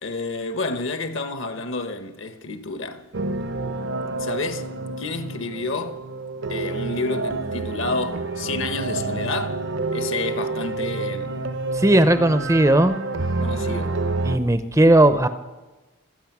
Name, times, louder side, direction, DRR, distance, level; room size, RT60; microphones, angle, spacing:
voice 1, 0.0-3.1 4.2-4.7 5.0-6.0 6.5-9.6 9.9-11.5 13.4-14.0, left 3 dB, 55° left, 1.1 m, -30 dB
sound 1, 3.1-14.4, right 3 dB, 60° right, 0.7 m, -28 dB
voice 2, 11.8-12.9 14.2-15.3, right 1 dB, 15° right, 0.6 m, -16 dB
25.5 x 8.9 x 6.0 m
head